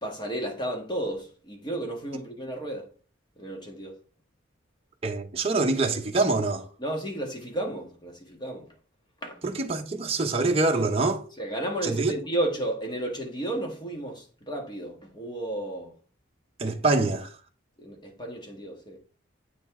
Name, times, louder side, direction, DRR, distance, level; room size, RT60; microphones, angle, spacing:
voice 1, 0.0-2.9 3.4-3.9 6.8-8.6 9.2-9.4 11.4-15.9 17.8-19.0, right 1 dB, 20° left, 1.5 m, -33 dB
voice 2, 5.0-6.7 9.4-11.2 11.8-12.1 16.6-17.3, right 3 dB, 30° right, 0.9 m, -25 dB
8.5 x 5.2 x 3.7 m
head